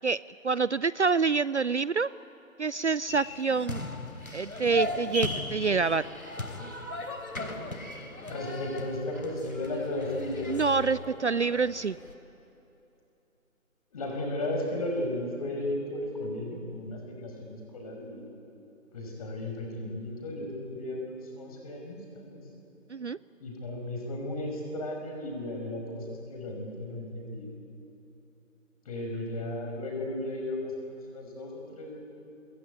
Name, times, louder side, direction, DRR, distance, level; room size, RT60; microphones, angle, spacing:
voice 1, 0.0-2.1 2.6-3.8 4.3-6.0 10.5-12.0 22.9-23.2, right 4 dB, 55° right, 19 dB, 0.5 m, -27 dB
sound 1, 3.1-12.1, left 2 dB, 75° left, 3.8 m, -37 dB
voice 2, 8.2-10.5 13.9-18.2 18.9-22.4 23.4-27.5 28.8-32.0, left 1 dB, 25° left, 1 dB, 5.8 m, -35 dB
25.0 x 21.5 x 9.4 m, 2.9 s
figure-of-eight pair, 160°, 42 cm